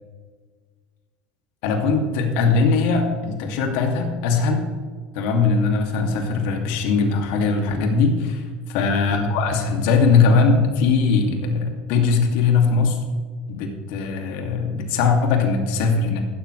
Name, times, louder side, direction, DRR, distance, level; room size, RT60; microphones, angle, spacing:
voice 1, 1.6-4.7 5.1-13.0 13.5-16.2, left 4 dB, 70° left, 3 dB, 2.5 m, -20 dB
15.0 x 12.5 x 3.3 m, 1.5 s
hypercardioid pair, 85°, 5 cm